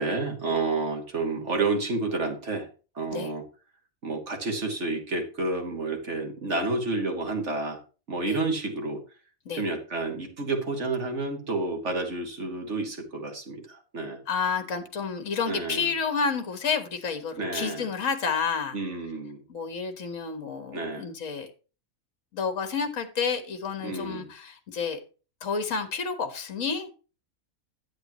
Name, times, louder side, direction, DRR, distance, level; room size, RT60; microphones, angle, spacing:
voice 1, 0.0-2.7 3.0-3.4 4.0-7.8 8.1-9.0 9.5-14.2 15.5-15.9 17.4-17.9 18.7-19.4 20.7-21.1 23.8-24.3, right 3 dB, 55° right, 3 dB, 2.2 m, -30 dB
voice 2, 14.3-18.7 19.5-21.5 22.3-25.0 25.4-26.9, left 5 dB, 65° left, 8 dB, 1.8 m, -30 dB
10.5 x 8.6 x 3.0 m, 0.34 s
omnidirectional pair, 1.5 m